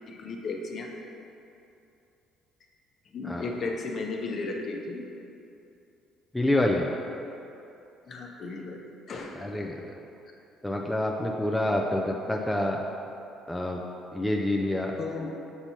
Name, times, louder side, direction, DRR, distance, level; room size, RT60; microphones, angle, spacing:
voice 1, 0.1-0.9 3.1-5.1 8.1-9.4 15.0-15.3, left 3 dB, 45° left, 1 dB, 0.8 m, -35 dB
voice 2, 6.3-6.8 9.4-10.0 10.6-12.8 13.5-13.8 14.1-14.9, left 1 dB, 5° left, -1 dB, 0.4 m, -27 dB
6.7 x 3.0 x 5.7 m, 2.7 s
cardioid pair, 110°, 0 cm